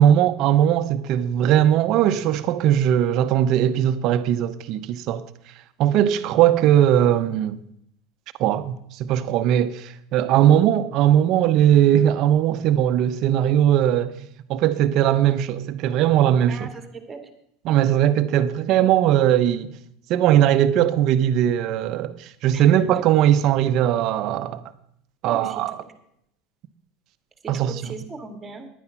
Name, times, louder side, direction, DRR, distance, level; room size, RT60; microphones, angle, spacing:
voice 1, 0.0-5.2 5.8-7.6 8.4-14.2 14.5-16.7 17.7-19.7 20.1-24.6 25.2-25.8 27.5-27.7, right 11 dB, 55° right, 0.9 m, -19 dB
voice 2, 16.5-17.3 22.5-23.0 25.2-25.6 27.4-28.7, right 3 dB, 20° right, 2.1 m, -37 dB
10.5 x 9.6 x 5.8 m
supercardioid pair, 100°, 0 cm